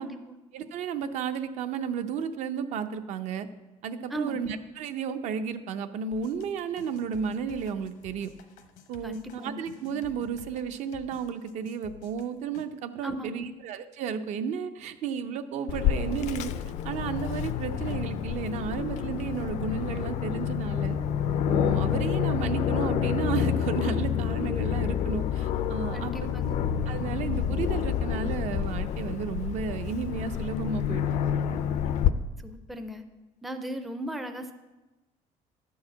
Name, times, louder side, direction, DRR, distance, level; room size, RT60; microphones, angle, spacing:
voice 1, 0.0-0.4 4.1-4.5 9.0-9.7 13.0-13.5 25.9-26.6 32.4-33.0 33.4-34.5, equal, ahead, 6 dB, 0.4 m, -37 dB
voice 2, 0.5-3.5 3.8-8.3 8.9-16.5 16.8-21.0 21.5-26.3 26.9-31.2, right 7 dB, 60° right, 10 dB, 0.6 m, -33 dB
sound 1, 6.1-12.6, left 8 dB, 85° left, 1.0 m, -51 dB
Aircraft, 15.7-32.1, left 9 dB, 60° left, 0.4 m, -28 dB
10.5 x 4.7 x 7.7 m, 1.1 s
cardioid pair, 175°, 13 cm